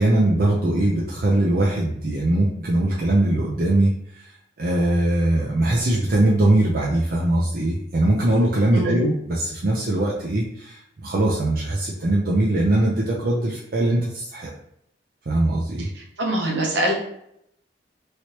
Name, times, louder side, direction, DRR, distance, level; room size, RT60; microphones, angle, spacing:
voice 1, 0.0-14.5 15.3-15.9, right 1 dB, 55° right, -3 dB, 0.5 m, -21 dB
voice 2, 15.8-16.9, right 1 dB, 75° right, 0 dB, 0.9 m, -24 dB
3.1 x 2.9 x 3.0 m, 0.74 s
head